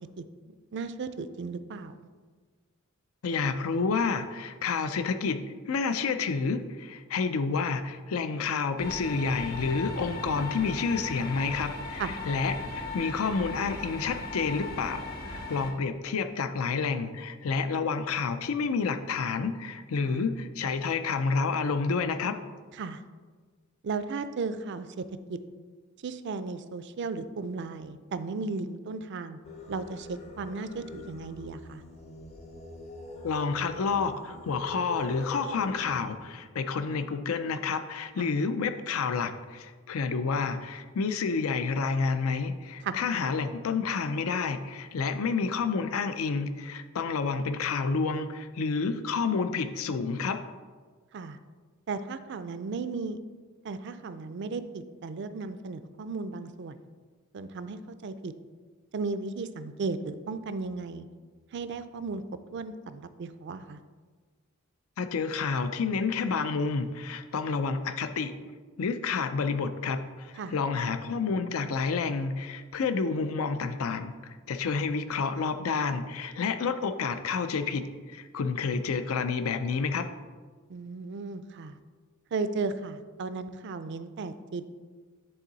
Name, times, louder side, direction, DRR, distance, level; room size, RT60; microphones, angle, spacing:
voice 1, 0.2-2.0 11.9-12.1 20.0-20.2 22.7-23.0 23.8-25.0 25.3-25.4 26.0-29.4 29.7-31.8 38.2-38.3 42.8-43.0 51.1-51.4 51.9-53.2 53.6-56.8 57.3-58.3 58.9-61.1 61.5-62.2 62.5-63.8 70.4-70.6 80.7-81.8 82.3-84.6, right 4 dB, 55° right, 12 dB, 0.4 m, -35 dB
voice 2, 3.2-5.4 5.7-22.4 33.2-50.4 65.0-68.3 68.8-74.1 74.5-77.8 78.1-80.0, left 5 dB, 75° left, 9 dB, 0.4 m, -29 dB
sound 1, 8.8-15.7, left 2 dB, 45° left, 1.2 m, -38 dB
Singing, 29.4-36.2, left 1 dB, 30° left, 0.6 m, -44 dB
10.0 x 3.8 x 4.0 m, 1.5 s
head